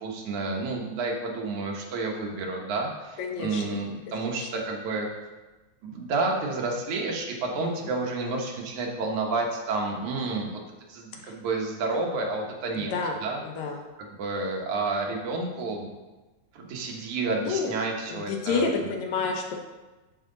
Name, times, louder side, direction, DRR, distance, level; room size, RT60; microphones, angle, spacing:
voice 1, 0.0-5.1 5.8-10.6 10.9-12.9 13.2-13.4 14.0-15.9 16.5-18.9, right 3 dB, 75° right, 0 dB, 2.5 m, -30 dB
voice 2, 3.2-3.8 4.4-4.5 7.6-7.9 11.1-11.3 12.7-13.8 17.4-17.7 18.1-19.6, left 4 dB, 75° left, 3 dB, 2.1 m, -30 dB
11.0 x 4.8 x 3.9 m, 1.2 s
omnidirectional pair, 3.5 m